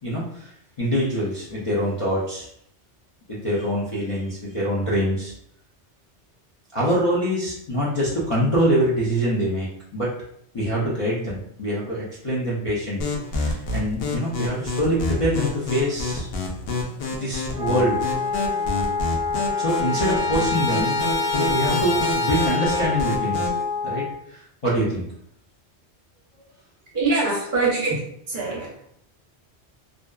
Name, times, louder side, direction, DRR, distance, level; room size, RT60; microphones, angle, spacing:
voice 1, 0.0-2.5 3.3-5.3 6.7-10.1 10.5-13.0 13.3-16.3 17.1-18.0 18.3-18.5 19.6-21.0 21.3-23.5 23.8-25.0, equal, 45° left, -7 dB, 0.4 m, -25 dB
sound 1, 13.0-23.6, left 2 dB, 65° left, 0.7 m, -29 dB
Wind instrument woodwind instrument, 17.5-24.2, left 5 dB, 5° right, 1.2 m, -26 dB
Trumpet, 18.4-18.5 18.8-23.2, left 1 dB, 80° left, 1.2 m, -30 dB
voice 2, 26.9-28.7, right 3 dB, 50° right, -4 dB, 0.8 m, -24 dB
2.6 x 2.2 x 2.2 m, 0.71 s
omnidirectional pair, 1.2 m